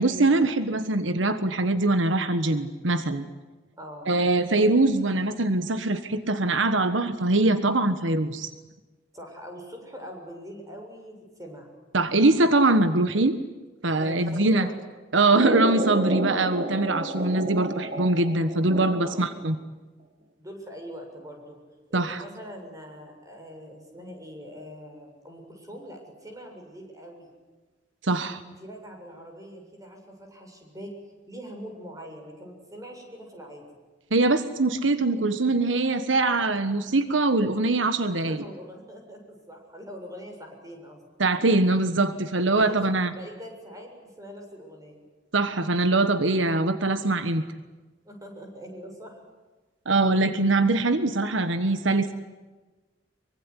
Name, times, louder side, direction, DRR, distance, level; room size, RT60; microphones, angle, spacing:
voice 1, 0.0-3.2 4.1-8.5 11.9-13.4 13.8-14.7 15.1-19.5 21.9-22.2 28.0-28.4 34.1-38.4 41.2-43.1 45.3-47.4 49.8-52.1, right 2 dB, 85° right, 10 dB, 1.4 m, -23 dB
voice 2, 3.8-4.1 9.1-11.7 14.0-14.7 19.0-19.3 20.4-21.6 21.9-27.3 28.4-30.9 31.3-33.6 38.0-41.0 42.5-42.8 43.1-45.1 48.0-49.2, equal, 20° right, 2 dB, 7.2 m, -42 dB
sound 1, 15.3-19.4, right 1 dB, 45° right, 2.8 m, -30 dB
24.5 x 24.0 x 9.9 m, 1.2 s
head